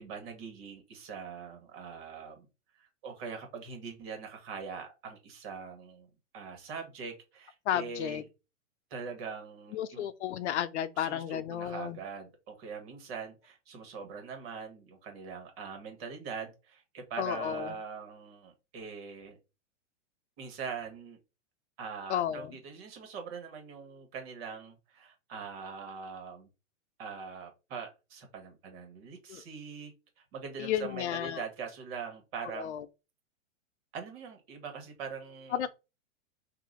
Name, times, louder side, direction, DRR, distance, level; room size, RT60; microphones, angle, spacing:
voice 1, 0.0-2.5 2.7-6.1 6.3-8.2 8.9-10.1 11.0-19.4 20.4-21.2 21.8-26.5 27.0-32.7 33.9-35.6, right 6 dB, 50° right, 1.6 m, -42 dB
voice 2, 7.7-8.2 9.7-12.0 17.2-17.7 22.1-22.5 29.3-29.4 30.6-31.4 32.5-32.8 35.5-35.7, left 10 dB, 60° left, 0.6 m, -33 dB
3.9 x 2.7 x 3.8 m
hypercardioid pair, 140°, 39 cm